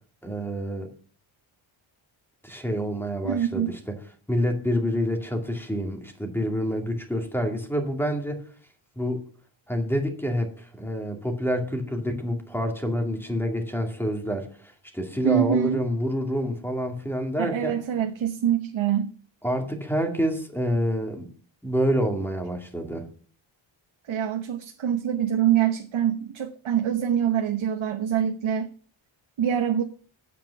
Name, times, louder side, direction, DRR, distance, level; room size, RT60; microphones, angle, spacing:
voice 1, 0.2-0.9 2.4-4.0 4.3-8.4 9.0-9.2 9.7-17.8 19.4-21.3 21.6-23.1, equal, 5° left, 3 dB, 2.3 m, -27 dB
voice 2, 3.2-3.7 15.2-15.8 17.4-19.1 24.1-28.7 29.4-29.8, right 10 dB, 75° right, 5 dB, 1.1 m, -25 dB
8.9 x 8.4 x 7.0 m, 0.42 s
wide cardioid pair, 140°, 48 cm